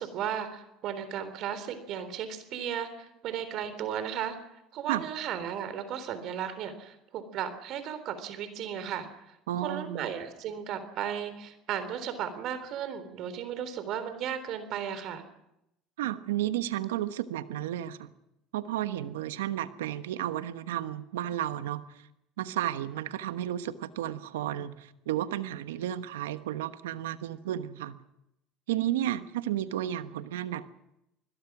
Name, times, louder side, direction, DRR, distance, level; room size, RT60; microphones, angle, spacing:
voice 1, 0.0-4.4 4.7-15.2, right 9 dB, 60° right, 11 dB, 3.6 m, -35 dB
voice 2, 9.5-10.1 16.0-18.1 18.5-22.1 22.4-28.0 28.7-30.7, right 12 dB, 90° right, 11 dB, 1.2 m, -32 dB
26.5 x 21.0 x 6.1 m, 0.85 s
supercardioid pair, 85°, 0 cm